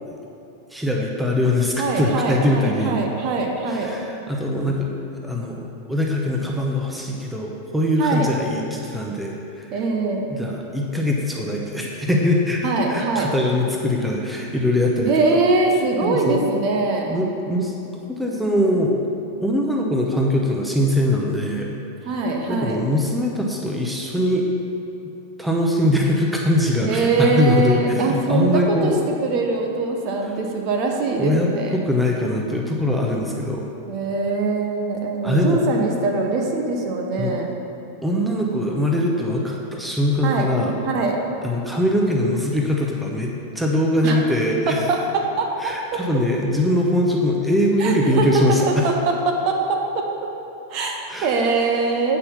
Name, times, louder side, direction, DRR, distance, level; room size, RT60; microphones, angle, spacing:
voice 1, 0.7-3.0 3.7-4.9 5.2-5.6 5.9-9.7 10.3-15.4 16.0-16.4 17.1-17.7 18.1-19.0 19.4-21.7 22.5-24.5 25.4-29.0 31.2-33.7 35.2-35.6 37.2-37.4 38.0-40.8 41.4-44.8 45.6-48.9 51.1-51.3, left 1 dB, 5° right, -1 dB, 0.9 m, -22 dB
voice 2, 1.8-4.0 8.0-8.3 9.7-10.3 12.6-13.3 15.1-17.1 22.0-22.8 26.8-31.8 33.9-37.5 40.2-40.5 40.8-41.2 44.0-44.2 44.9-46.0 47.8-50.1 50.7-50.9 51.2-52.2, right 3 dB, 40° right, 1 dB, 1.1 m, -22 dB
8.8 x 5.5 x 5.8 m, 2.7 s
figure-of-eight pair, 90°, 0 cm